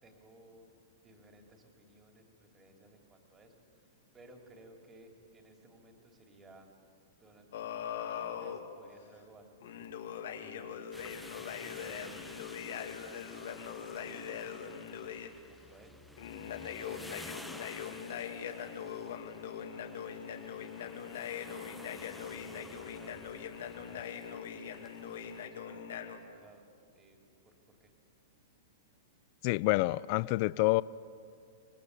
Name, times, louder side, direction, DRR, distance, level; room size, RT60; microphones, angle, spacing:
voice 1, 0.0-6.7 7.2-7.8 8.2-9.9 10.4-10.9 11.2-11.4 11.8-12.3 12.9-16.0 16.8-21.4 22.3-24.1 24.5-26.0 26.3-26.7 26.9-27.2 27.4-27.9, right 1 dB, 15° right, 3 dB, 3.2 m, -59 dB
sound 1, 7.5-8.6 9.6-15.3 16.2-26.2, left 8 dB, 75° left, 2.2 m, -41 dB
sound 2, 10.9-25.5, left 1 dB, ahead, 1.1 m, -52 dB
voice 2, 29.4-30.8, left 21 dB, 45° left, 20 dB, 0.5 m, -27 dB
26.0 x 19.5 x 8.4 m, 2.3 s
hypercardioid pair, 145°, 0 cm